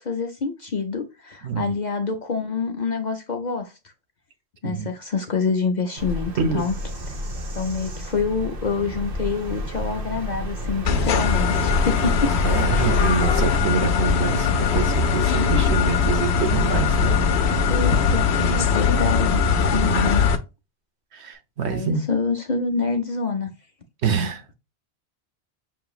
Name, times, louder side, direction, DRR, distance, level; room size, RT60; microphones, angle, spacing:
voice 1, 0.0-3.7 4.6-6.7 7.6-12.3 12.7-13.2 17.7-20.2 21.7-23.5, left 4 dB, 50° left, 0.7 m, -27 dB
Bird vocalization bird call bird song, 6.0-13.6, equal, 55° right, 1.1 m, -29 dB
sound 1, 10.9-20.4, left 5 dB, 75° left, 0.9 m, -20 dB
voice 2, 12.4-17.2 19.7-20.1 21.1-22.0 24.0-24.5, right 5 dB, 75° right, 1.2 m, -26 dB
6.2 x 2.9 x 2.3 m
omnidirectional pair, 1.1 m